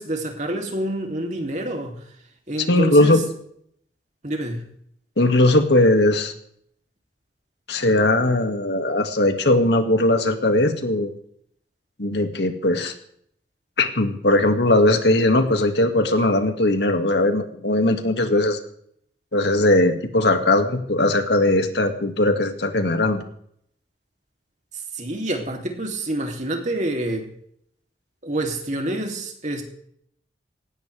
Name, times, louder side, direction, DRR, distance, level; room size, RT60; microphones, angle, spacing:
voice 1, 0.0-2.0 2.5-3.2 4.2-4.7 24.9-27.3 28.2-29.6, right 1 dB, 40° right, 2 dB, 3.0 m, -27 dB
voice 2, 2.7-3.3 5.2-6.3 7.7-11.1 12.0-12.9 13.8-18.6 19.3-23.2, left 1 dB, 75° left, 5 dB, 2.2 m, -19 dB
18.5 x 17.5 x 3.5 m, 0.66 s
head